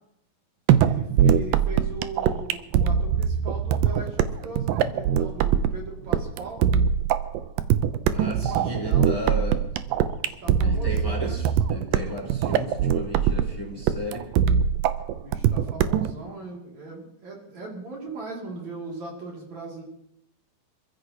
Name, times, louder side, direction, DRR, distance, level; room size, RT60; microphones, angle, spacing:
sound 1, 0.7-16.1, right 9 dB, 80° right, 2.3 m, -22 dB
voice 1, 0.8-6.6 8.2-9.1 10.2-11.4 15.2-19.8, right 3 dB, 55° right, -2 dB, 3.8 m, -39 dB
voice 2, 8.1-9.6 10.6-14.3, left 1 dB, 5° left, -2 dB, 4.0 m, -34 dB
26.5 x 15.0 x 2.9 m, 0.79 s
omnidirectional pair, 4.1 m